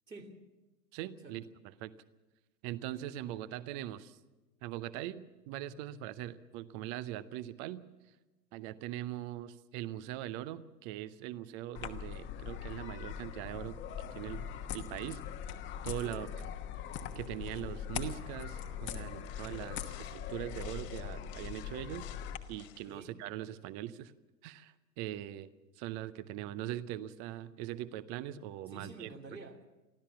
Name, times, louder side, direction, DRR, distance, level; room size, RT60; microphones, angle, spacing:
voice 1, 0.1-0.4 1.2-1.4 16.0-16.3 22.8-23.1 28.7-29.7, right 2 dB, 90° right, 2 dB, 2.9 m, -49 dB
voice 2, 0.9-1.9 2.6-4.2 4.6-7.8 8.5-13.8 14.1-14.5 14.7-15.2 15.8-16.3 17.1-22.1 22.5-24.1 24.4-25.5 25.8-29.1, right 13 dB, 25° right, 16 dB, 0.7 m, -41 dB
sound 1, 11.7-22.4, left 8 dB, 25° left, 1.2 m, -41 dB
sound 2, 19.0-23.1, left 12 dB, 50° left, 2.4 m, -55 dB
24.0 x 15.0 x 7.2 m, 1.1 s
figure-of-eight pair, 105°, 50 cm